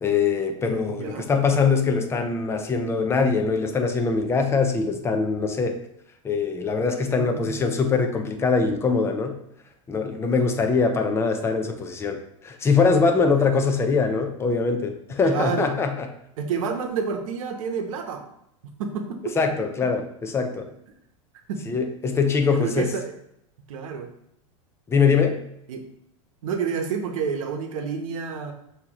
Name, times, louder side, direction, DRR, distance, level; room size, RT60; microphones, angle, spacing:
voice 1, 0.0-5.8 6.2-9.4 9.9-16.1 19.4-20.7 21.7-22.9 24.9-25.4, left 4 dB, 15° left, 5 dB, 0.5 m, -23 dB
voice 2, 0.9-1.2 7.1-7.7 13.1-13.5 15.2-15.7 16.4-18.2 18.8-19.4 21.5-21.6 22.5-23.1 23.7-24.1 25.7-25.8 26.4-28.5, right 6 dB, 75° right, 5 dB, 0.9 m, -29 dB
6.0 x 2.9 x 2.9 m, 0.78 s
supercardioid pair, 120°, 17 cm